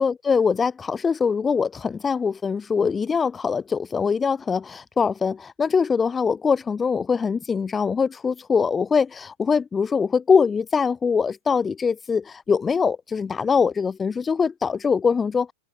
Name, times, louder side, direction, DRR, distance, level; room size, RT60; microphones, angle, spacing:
voice 1, 0.0-15.5, left 5 dB, 15° left, 0.4 m, -23 dB
hypercardioid pair, 100°, 0 cm